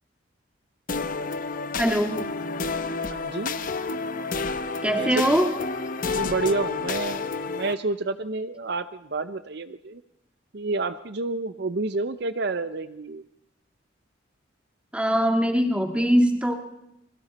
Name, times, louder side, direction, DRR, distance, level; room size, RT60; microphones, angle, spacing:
sound 1, 0.9-7.7, left 4 dB, 45° left, 0.9 m, -30 dB
voice 1, 1.8-2.2 4.8-5.5 14.9-16.5, equal, 5° right, 4 dB, 2.0 m, -22 dB
voice 2, 3.1-3.5 5.0-5.4 6.1-10.0 10.5-13.2, right 3 dB, 60° right, 12 dB, 0.7 m, -29 dB
29.0 x 22.0 x 4.2 m, 0.84 s
head